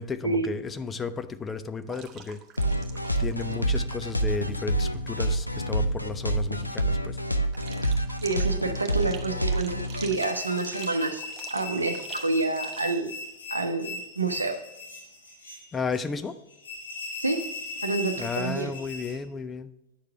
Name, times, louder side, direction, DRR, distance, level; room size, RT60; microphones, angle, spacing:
voice 1, 0.0-2.4 3.2-7.2 15.7-16.3 18.2-19.7, left 4 dB, 20° left, 0.5 m, -33 dB
sound 1, 1.9-3.6 3.9-4.1 7.5-13.0, right 7 dB, 30° right, 0.9 m, -46 dB
sound 2, 2.6-11.0, right 1 dB, 85° left, 0.5 m, -28 dB
voice 2, 8.2-11.2 11.5-13.1 13.5-14.6 17.2-17.5 17.8-18.7, right 3 dB, 80° right, 0.7 m, -28 dB
sound 3, 10.1-19.2, left 3 dB, 70° left, 1.6 m, -39 dB
9.2 x 6.6 x 3.4 m
figure-of-eight pair, 90°, 0 cm